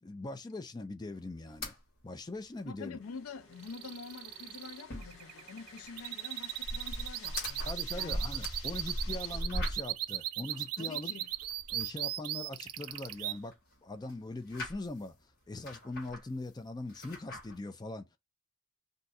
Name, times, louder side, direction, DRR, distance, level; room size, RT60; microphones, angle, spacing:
voice 1, 0.0-1.8 2.0-3.0 7.7-11.1 11.7-15.1 15.5-18.1, left 2 dB, 20° left, 0.4 m, -41 dB
sound 1, 1.5-1.8 2.1-2.2 2.5-2.6 3.0-3.1 3.4-4.0 4.3-10.1 10.5-11.9 12.4-13.8 14.1-15.1 15.5-16.5 16.9-17.6, equal, 45° left, 1.5 m, -40 dB
voice 2, 2.6-7.7 7.9-8.2 8.7-9.6 10.8-11.3, left 5 dB, 80° left, 0.5 m, -47 dB
sound 2, 3.0-9.4, left 4 dB, 65° left, 1.1 m, -54 dB
sound 3, 3.6-13.4, right 14 dB, 85° right, 0.4 m, -38 dB
2.6 x 2.3 x 3.9 m
head